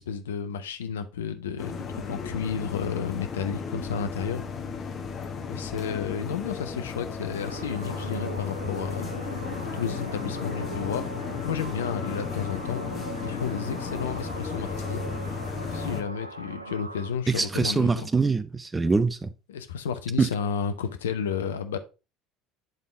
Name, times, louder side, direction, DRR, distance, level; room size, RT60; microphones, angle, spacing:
voice 1, 0.0-4.4 5.5-9.1 9.7-11.1 11.4-12.8 13.2-15.0 15.7-18.1 19.5-21.8, left 7 dB, 75° left, 0.6 m, -32 dB
sound 1, 1.6-16.0, left 5 dB, 40° left, 1.1 m, -34 dB
sound 2, 7.4-17.1, right 3 dB, 90° right, 0.4 m, -40 dB
voice 2, 17.3-19.3 20.2-20.3, right 4 dB, 20° right, 0.6 m, -24 dB
8.0 x 3.6 x 3.7 m
figure-of-eight pair, 65°, 0 cm